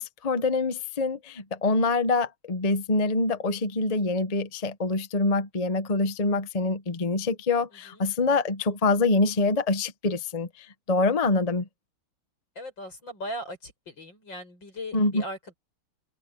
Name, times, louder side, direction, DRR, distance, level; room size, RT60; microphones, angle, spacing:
voice 1, 0.0-10.5 10.9-11.7 14.9-15.2, left 3 dB, 30° left, 0.7 m, -25 dB
voice 2, 7.7-8.0 12.6-15.5, equal, 65° left, 8.0 m, -39 dB
omnidirectional pair, 2.2 m